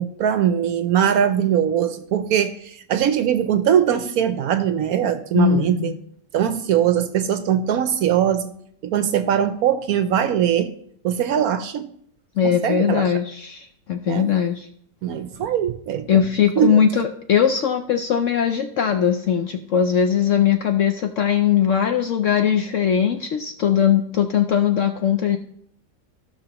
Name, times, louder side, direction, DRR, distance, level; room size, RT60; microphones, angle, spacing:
voice 1, 0.0-5.9 6.3-8.5 8.8-10.7 11.0-11.8 12.4-13.1 14.1-14.3 15.0-16.2 16.6-16.8, right 9 dB, 70° right, 10 dB, 1.0 m, -21 dB
voice 2, 5.3-6.0 12.4-14.7 16.1-25.4, left 8 dB, 70° left, 6 dB, 0.7 m, -20 dB
15.5 x 6.2 x 3.0 m, 0.67 s
omnidirectional pair, 1.9 m